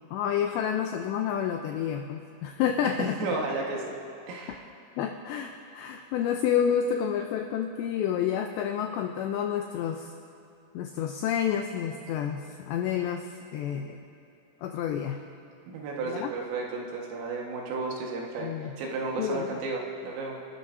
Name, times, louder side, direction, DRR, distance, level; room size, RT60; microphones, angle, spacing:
voice 1, 0.1-3.2 5.0-10.1 10.7-14.0 14.6-15.2 16.0-16.3 18.4-18.7 19.2-19.6, left 8 dB, 85° left, 4 dB, 2.5 m, -29 dB
voice 2, 3.2-3.9 4.3-4.6 15.7-20.4, right 3 dB, 85° right, -1 dB, 4.2 m, -33 dB
29.0 x 12.5 x 2.7 m, 2.8 s
omnidirectional pair, 5.7 m